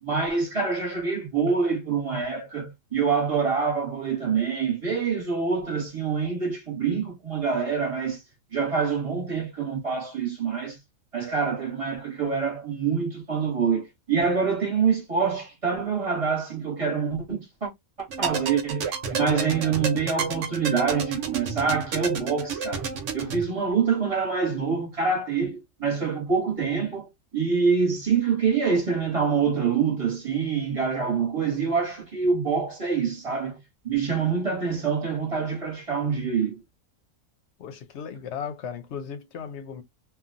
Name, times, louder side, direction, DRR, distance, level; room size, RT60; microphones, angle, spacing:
voice 1, 0.0-8.2 8.5-10.8 11.1-17.7 18.0-22.8 23.1-33.6 33.8-36.6, right 5 dB, 25° right, 1.0 m, -26 dB
sound 1, 18.1-23.4, right 5 dB, 65° right, 1.0 m, -31 dB
voice 2, 37.6-39.8, left 7 dB, 65° left, 0.8 m, -36 dB
2.8 x 2.2 x 2.5 m
omnidirectional pair, 1.4 m